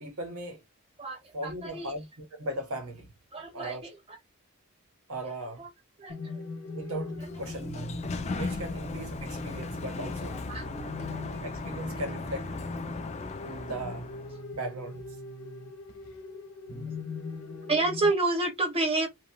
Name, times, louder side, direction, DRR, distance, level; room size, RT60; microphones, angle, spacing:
voice 1, 0.0-0.6 1.3-3.1 3.5-3.9 5.1-5.6 6.7-7.9 8.4-10.3 10.8-10.9 11.4-12.5 13.4-14.1 14.5-15.0, right 1 dB, 75° right, 1.0 m, -37 dB
voice 2, 1.0-1.9 3.3-3.9 5.6-5.7 6.0-6.3 10.5-10.7 11.0-11.2 17.7-19.1, right 2 dB, 25° right, 0.9 m, -29 dB
sound 1, 6.1-18.1, left 2 dB, 75° left, 0.9 m, -40 dB
Sliding door, 7.0-14.4, left 3 dB, 30° left, 0.3 m, -37 dB
2.9 x 2.7 x 2.3 m
head